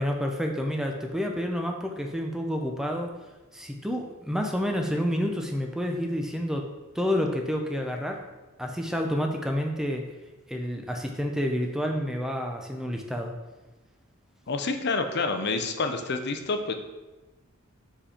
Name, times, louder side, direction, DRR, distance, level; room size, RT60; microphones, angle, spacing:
voice 1, 0.0-3.1 3.5-6.7 6.9-8.2 8.6-10.1 10.5-13.3, equal, ahead, 2 dB, 0.5 m, -29 dB
voice 2, 14.5-16.7, left 3 dB, 50° left, 6 dB, 0.6 m, -28 dB
5.0 x 5.0 x 4.3 m, 1.1 s
head